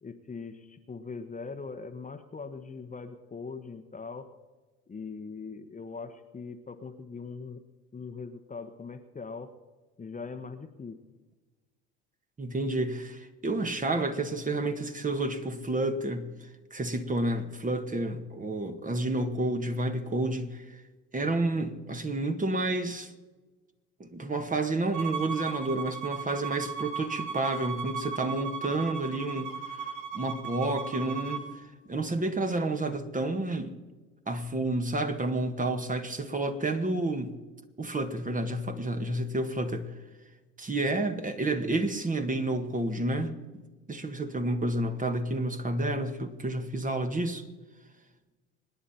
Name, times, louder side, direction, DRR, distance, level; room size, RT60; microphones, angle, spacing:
voice 1, 0.0-4.3 4.9-7.6 7.9-9.5 10.0-11.0, left 4 dB, 20° left, 1.2 m, -41 dB
voice 2, 12.4-16.3 16.7-20.8 21.1-23.1 24.0-31.5 31.9-33.7 34.3-37.3 37.8-39.9 40.6-43.4 43.9-47.5, right 2 dB, 20° right, 1.7 m, -30 dB
Bowed string instrument, 24.9-31.5, right 6 dB, 60° right, 1.9 m, -37 dB
25.5 x 10.0 x 4.3 m
hypercardioid pair, 60°, 35 cm